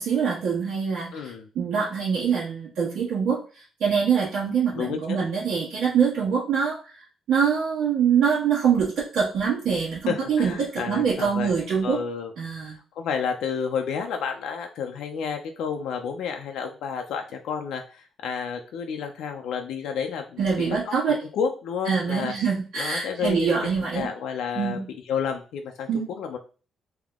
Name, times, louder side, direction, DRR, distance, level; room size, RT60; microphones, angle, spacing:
voice 1, 0.0-3.4 3.8-7.0 7.3-12.0 12.4-12.8 20.4-21.2 21.8-24.1 24.5-24.9 25.9-26.1, right 6 dB, 70° right, -8 dB, 1.5 m, -24 dB
voice 2, 1.1-1.5 4.7-5.2 10.1-11.6 11.8-12.3 13.0-20.9 21.3-22.3 22.8-23.6 23.9-24.8 25.1-26.4, left 6 dB, 85° left, 4 dB, 0.5 m, -30 dB
3.6 x 2.9 x 3.6 m, 0.36 s
cardioid pair, 150°, 0 cm